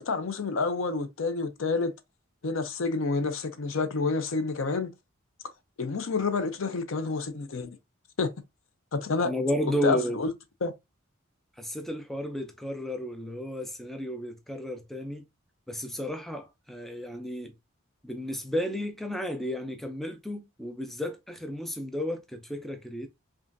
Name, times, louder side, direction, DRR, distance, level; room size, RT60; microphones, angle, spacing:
voice 1, 0.0-1.9 2.4-4.9 5.8-7.8 8.2-8.3 8.9-9.3 9.7-10.3 10.6-10.7, left 4 dB, 70° left, 0.6 m, -28 dB
voice 2, 9.2-10.2 11.6-15.2 15.7-17.5 18.0-23.1, equal, ahead, 0.4 m, -33 dB
5.0 x 2.4 x 2.5 m
head